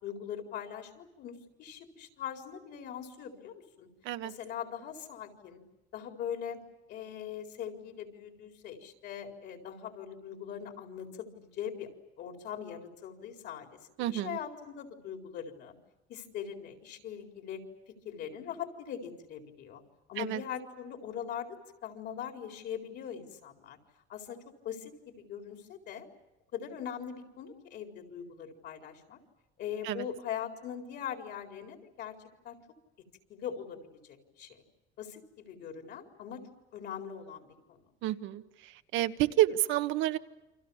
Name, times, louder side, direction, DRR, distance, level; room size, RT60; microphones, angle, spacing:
voice 1, 0.0-3.9 4.2-5.6 5.9-6.6 6.9-11.9 12.2-15.7 16.1-17.6 17.9-19.8 20.1-23.8 24.1-24.4 24.6-26.1 26.5-29.2 29.6-32.2 32.4-32.6 33.3-33.8 34.0-34.6 35.0-36.4 36.7-37.8, left 8 dB, 60° left, 4 dB, 4.3 m, -41 dB
voice 2, 14.0-14.4 20.2-20.4 29.8-30.0 38.0-38.4 38.9-40.2, right 14 dB, 80° right, 9 dB, 1.4 m, -29 dB
29.0 x 26.0 x 7.2 m, 1.0 s
cardioid pair, 165°, 19 cm